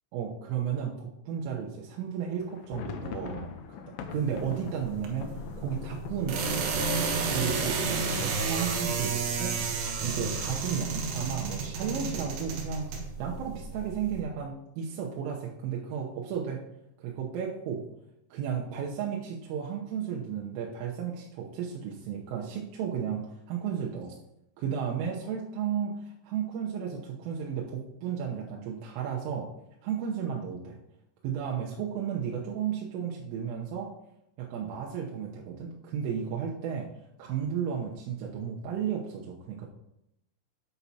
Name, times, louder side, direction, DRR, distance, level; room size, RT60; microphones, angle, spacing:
voice 1, 0.1-3.8 4.1-5.3 5.6-6.8 7.3-9.6 10.0-16.6 17.0-17.8 18.3-24.1 24.6-29.5 29.8-30.8 31.2-33.9 34.4-36.9 37.2-39.7, right 7 dB, 90° right, -2 dB, 3.5 m, -33 dB
sound 1, 2.4-10.1 10.4-10.5 10.8-11.0 11.5-12.0, left 7 dB, 80° left, 2.7 m, -43 dB
sound 2, 4.1-14.2, right 4 dB, 70° right, 2.4 m, -32 dB
10.5 x 8.1 x 2.8 m, 0.82 s
omnidirectional pair, 5.6 m